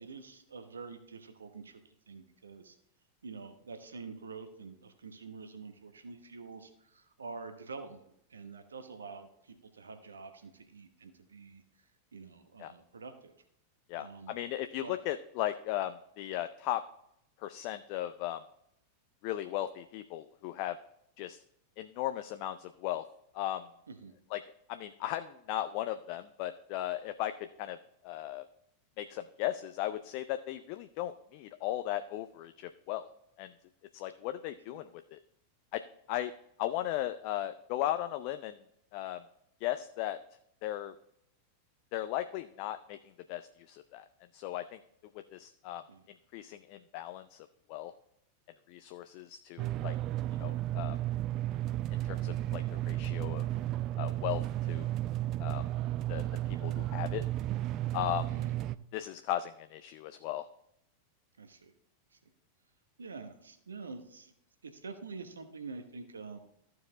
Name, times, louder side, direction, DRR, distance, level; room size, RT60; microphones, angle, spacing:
voice 1, 0.0-2.8 3.2-8.0 8.3-11.6 12.1-13.3 14.0-14.4 14.8-15.0 23.9-24.1 34.7-34.8 45.9-46.1 58.3-58.5 61.4-61.7 62.1-62.2 63.0-64.3 64.6-66.4, right 4 dB, 70° right, 8 dB, 1.0 m, -47 dB
voice 2, 13.9-16.8 17.4-18.4 19.2-20.8 21.2-21.4 21.8-23.0 23.3-23.7 24.3-24.4 24.7-27.8 28.0-28.4 29.0-33.1 33.4-33.5 33.9-35.2 35.7-35.8 36.1-36.3 36.6-38.6 38.9-39.2 39.6-40.2 40.6-40.9 41.9-43.0 43.3-44.0 44.3-44.8 45.3-45.8 46.3-47.9 48.7-50.0 50.4-51.0 51.9-53.4 54.0-54.4 54.7-54.9 55.4-55.6 56.1-57.2 57.9-58.3 58.9-60.5, left 13 dB, 45° left, 10 dB, 0.4 m, -36 dB
sound 1, 49.6-58.8, right 14 dB, 35° right, 0.3 m, -33 dB
14.0 x 4.8 x 3.8 m, 0.76 s
figure-of-eight pair, 90°, 0 cm